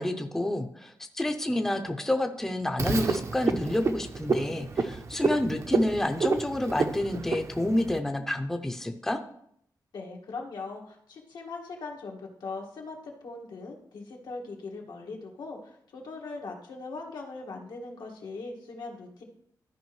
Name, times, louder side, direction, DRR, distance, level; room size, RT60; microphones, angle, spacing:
voice 1, 0.0-9.2, left 1 dB, 5° left, 6 dB, 0.5 m, -29 dB
Frog, 2.8-8.0, right 4 dB, 45° right, 0.6 m, -29 dB
voice 2, 9.9-19.2, left 3 dB, 85° left, 0 dB, 1.7 m, -40 dB
13.5 x 5.0 x 3.1 m, 0.69 s
wide cardioid pair, 160°, 7 cm